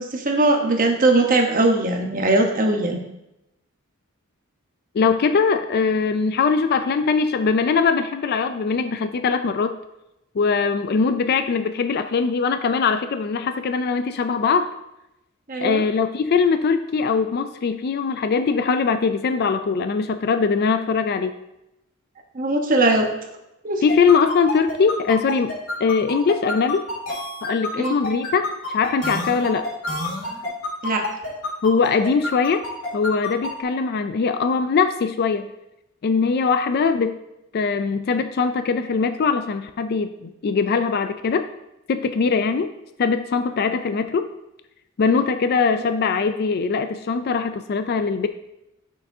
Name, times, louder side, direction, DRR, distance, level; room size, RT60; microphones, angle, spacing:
voice 1, 0.0-3.0 15.5-15.8 22.3-23.1 23.6-23.8 27.8-28.0 30.8-31.1 45.8-45.9, right 2 dB, 40° right, 3 dB, 1.0 m, -20 dB
voice 2, 4.9-9.8 10.4-14.7 15.6-21.4 23.8-25.5 25.8-26.8 27.4-29.7 31.6-32.7 32.9-35.5 36.0-37.2 37.5-41.5 41.9-42.7 43.0-44.3 45.0-48.3, left 5 dB, 50° left, 9 dB, 0.4 m, -21 dB
sound 1, 23.9-33.5, left 2 dB, 70° left, 2.5 m, -28 dB
9.5 x 6.5 x 2.7 m, 0.89 s
head